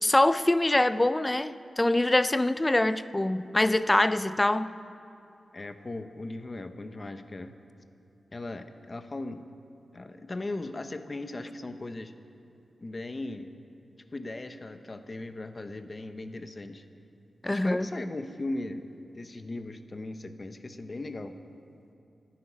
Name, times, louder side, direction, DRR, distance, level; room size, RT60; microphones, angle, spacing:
voice 1, 0.0-4.7 17.4-17.9, left 1 dB, 15° left, 13 dB, 0.4 m, -24 dB
voice 2, 5.5-7.6 8.3-9.5 9.9-12.1 12.8-13.5 14.1-16.8 17.4-21.4, left 2 dB, 30° left, 8 dB, 0.8 m, -38 dB
27.0 x 10.0 x 5.0 m, 2.6 s
wide cardioid pair, 140°, 0 cm